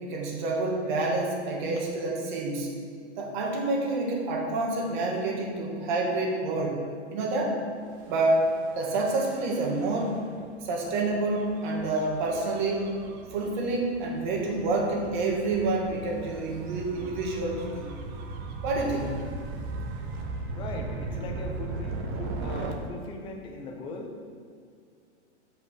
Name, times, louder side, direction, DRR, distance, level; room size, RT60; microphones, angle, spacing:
voice 1, 0.0-2.7 3.2-6.8 7.1-7.6 8.1-8.5 8.8-10.2 10.6-12.9 13.3-17.9 18.6-19.2, right 2 dB, 40° right, 0 dB, 1.8 m, -28 dB
Gull seagull / Waves surf / Siren, 8.0-22.7, right 3 dB, 20° right, 0.4 m, -38 dB
voice 2, 20.5-24.2, left 2 dB, 15° left, 2 dB, 0.7 m, -39 dB
7.9 x 5.3 x 6.4 m, 2.2 s
hypercardioid pair, 155°, 35 cm